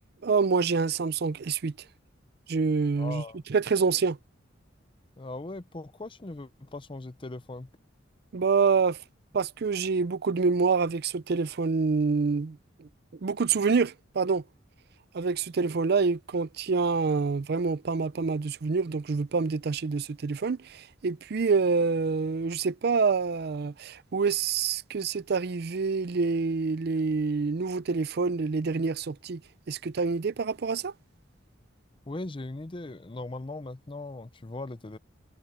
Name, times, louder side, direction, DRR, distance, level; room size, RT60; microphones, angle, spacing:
voice 1, 0.2-1.7 2.5-3.2 3.5-4.2 8.3-9.0 9.3-12.9 13.2-14.4 15.1-29.4 29.7-30.9, right 4 dB, 55° right, 0.5 m, -27 dB
voice 2, 3.0-3.4 5.2-7.7 32.1-35.0, left 2 dB, 25° left, 0.6 m, -39 dB
head